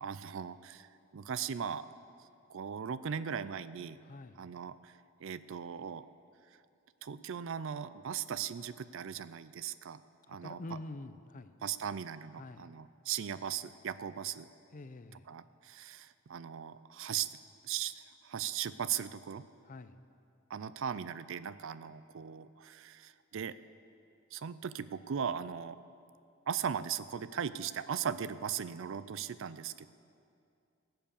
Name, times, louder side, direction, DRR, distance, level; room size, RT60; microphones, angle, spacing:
voice 1, 0.0-1.9 2.5-4.0 4.4-4.9 5.2-6.1 7.0-10.0 10.3-10.8 11.6-14.5 15.3-17.4 17.6-19.5 20.5-23.6 24.3-25.8 26.5-29.9, right 8 dB, 65° right, 15 dB, 0.4 m, -38 dB
voice 2, 4.0-4.4 10.3-11.6 12.4-12.7 14.7-15.3 19.6-20.0, left 2 dB, 40° left, 12 dB, 0.5 m, -46 dB
18.5 x 7.9 x 6.9 m, 2.5 s
head